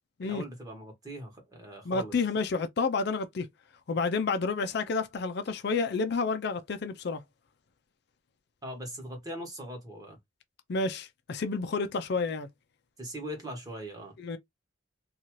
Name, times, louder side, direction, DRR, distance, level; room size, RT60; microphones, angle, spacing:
voice 1, 0.2-2.1 8.6-10.2 13.0-14.1, equal, 20° right, 1.2 m, -40 dB
voice 2, 1.9-3.5 3.9-7.2 10.7-12.5 14.2-14.4, left 4 dB, 60° left, 0.5 m, -30 dB
2.7 x 2.4 x 3.0 m
head